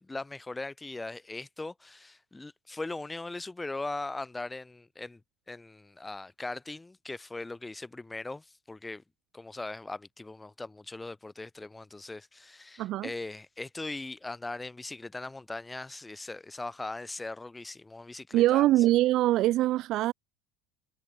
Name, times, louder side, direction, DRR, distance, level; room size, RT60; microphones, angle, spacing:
voice 1, 0.0-5.2 5.5-9.0 9.3-18.8, left 2 dB, 10° left, 3.5 m, -40 dB
voice 2, 12.8-13.1 18.3-20.1, right 15 dB, 50° right, 0.6 m, -23 dB
supercardioid pair, 135°, 0 cm